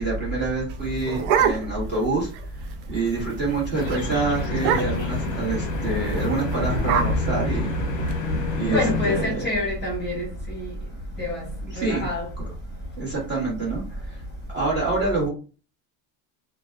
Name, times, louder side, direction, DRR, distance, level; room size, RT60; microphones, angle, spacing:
voice 1, 0.0-7.7 8.5-9.5 11.7-12.1 12.4-12.5 13.0-14.2 14.5-15.3, right 3 dB, 20° right, 1.2 m, -27 dB
sound 1, 0.7-2.0 2.3-2.4 2.7-3.0 3.4-3.6 3.9-4.0 4.5-5.2 6.1-8.1, right 6 dB, 80° right, 0.6 m, -25 dB
sound 2, 3.7-9.2, left 3 dB, 35° left, 0.8 m, -28 dB
voice 2, 8.6-10.7 11.2-11.4 11.8-12.2, left 1 dB, 20° left, 1.0 m, -27 dB
2.5 x 2.2 x 2.2 m
cardioid pair, 160°, 49 cm